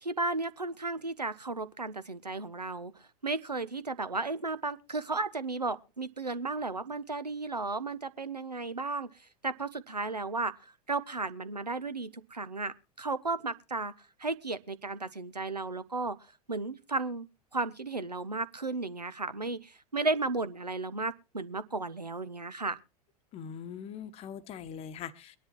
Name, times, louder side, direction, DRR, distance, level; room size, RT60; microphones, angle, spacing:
voice 1, 0.0-2.9 3.2-9.1 9.4-13.9 14.2-16.2 16.5-17.3 17.5-22.8, right 3 dB, 90° right, 0.6 m, -34 dB
voice 2, 23.3-25.4, left 8 dB, 30° left, 0.9 m, -42 dB
22.5 x 10.5 x 2.9 m
figure-of-eight pair, 90°, 20 cm